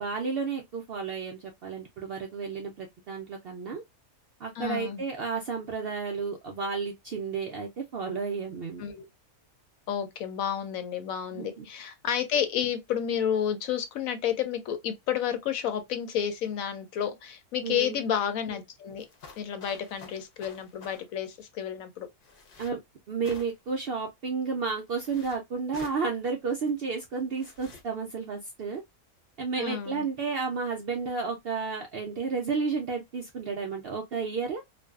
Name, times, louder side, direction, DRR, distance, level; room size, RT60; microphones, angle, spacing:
voice 1, 0.0-3.8 4.4-8.8 11.3-11.7 17.6-18.0 22.6-22.8 23.1-28.8 29.4-34.6, right 5 dB, 80° right, 0.5 m, -32 dB
voice 2, 4.6-5.0 8.8-9.0 9.9-19.1 19.4-22.1 29.6-30.1, left 9 dB, 70° left, 1.0 m, -31 dB
sound 1, 19.0-21.0 22.2-22.7 23.2-23.7 24.9-25.4 25.7-26.0 27.3-27.8, left 4 dB, 50° left, 0.7 m, -49 dB
2.5 x 2.2 x 2.2 m
omnidirectional pair, 1.6 m